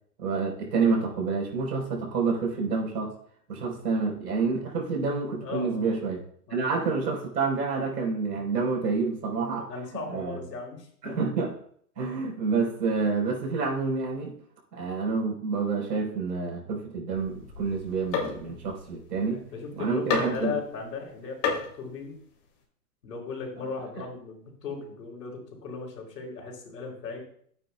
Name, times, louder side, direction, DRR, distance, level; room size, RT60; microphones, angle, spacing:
voice 1, 0.2-3.1 3.5-6.2 6.5-9.7 10.1-10.4 11.0-11.5 12.0-14.3 14.7-19.4 19.8-20.6, right 4 dB, 85° right, 0 dB, 4.3 m, -28 dB
voice 2, 5.4-5.9 6.5-6.7 9.5-11.2 19.2-22.2 23.0-27.2, left 4 dB, 80° left, 1 dB, 3.4 m, -37 dB
sound 1, 17.1-19.6 20.1-20.6 21.4-21.8, left 6 dB, 35° left, 2.3 m, -31 dB
12.5 x 9.1 x 2.3 m, 0.62 s
hypercardioid pair, 150°, 48 cm